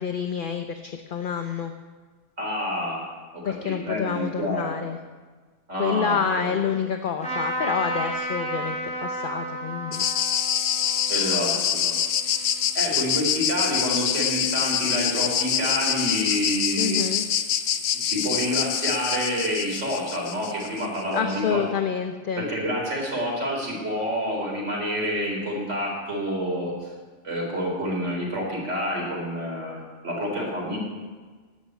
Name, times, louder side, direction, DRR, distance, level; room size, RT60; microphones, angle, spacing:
voice 1, 0.0-1.7 3.4-5.0 5.8-10.1 16.8-17.3 21.1-22.4, left 7 dB, 50° left, 6 dB, 0.8 m, -28 dB
voice 2, 2.4-4.8 5.7-6.5 11.1-12.0 12.7-17.0 18.0-21.6 22.4-26.7 27.2-30.8, equal, 75° right, -2 dB, 4.4 m, -28 dB
Trumpet, 7.2-12.7, right 1 dB, 5° left, 4.3 m, -33 dB
sound 1, 9.9-20.9, left 9 dB, 85° left, 1.1 m, -25 dB
11.0 x 9.5 x 8.2 m, 1.4 s
omnidirectional pair, 1.2 m